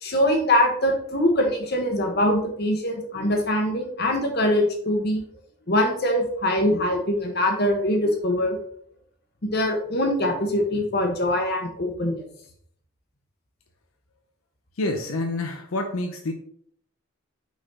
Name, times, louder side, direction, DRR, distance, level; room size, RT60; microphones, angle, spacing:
voice 1, 0.0-5.2 5.7-8.6 9.4-12.2, left 1 dB, 50° left, 3 dB, 1.3 m, -23 dB
voice 2, 14.8-16.3, left 2 dB, 85° left, 4 dB, 0.7 m, -27 dB
5.9 x 4.2 x 4.1 m, 0.64 s
head